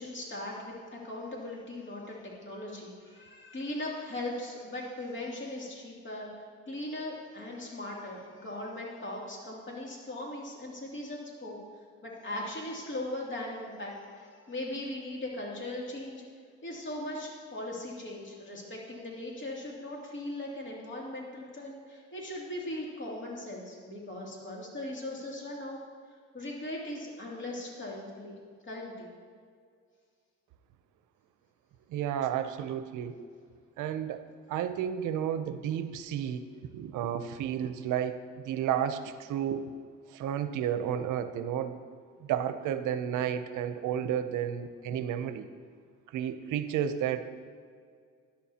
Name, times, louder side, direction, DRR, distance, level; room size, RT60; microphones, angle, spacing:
voice 1, 0.0-11.6 12.0-16.2 16.6-25.8 26.3-28.4 28.6-29.1, left 1 dB, 40° left, -3 dB, 2.7 m, -39 dB
voice 2, 31.9-33.2 33.8-36.4 36.7-39.7 40.1-41.8 42.2-45.5 46.1-47.4, right 9 dB, 85° right, 11 dB, 0.6 m, -32 dB
11.5 x 10.5 x 2.8 m, 2.1 s
cardioid pair, 90°, 30 cm